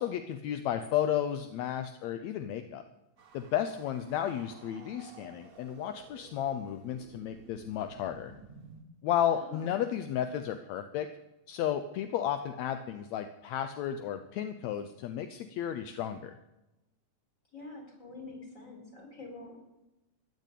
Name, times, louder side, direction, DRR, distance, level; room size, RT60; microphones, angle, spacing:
voice 1, 0.0-2.8 3.3-8.3 9.0-11.1 11.5-16.3, left 10 dB, 75° left, 9 dB, 1.7 m, -33 dB
sound 1, 3.2-8.8, right 5 dB, 55° right, 0.9 m, -54 dB
voice 2, 9.3-9.8 17.5-19.6, left 2 dB, 20° left, 1 dB, 4.8 m, -46 dB
14.5 x 11.0 x 8.4 m, 0.95 s
omnidirectional pair, 4.0 m